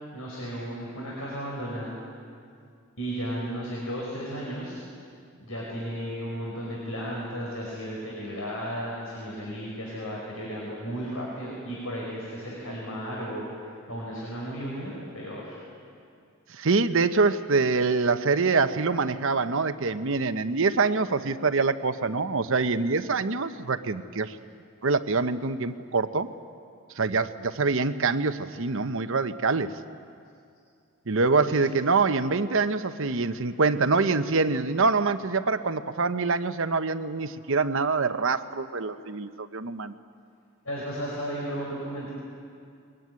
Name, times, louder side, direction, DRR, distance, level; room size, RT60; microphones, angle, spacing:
voice 1, 0.1-1.9 3.0-4.8 5.4-15.6 31.4-31.6 40.6-42.1, equal, 80° left, -4 dB, 5.4 m, -34 dB
voice 2, 16.5-24.4 24.8-26.3 26.9-29.7 31.1-40.0, right 4 dB, 65° right, 10 dB, 0.9 m, -25 dB
22.5 x 20.5 x 9.5 m, 2.3 s
head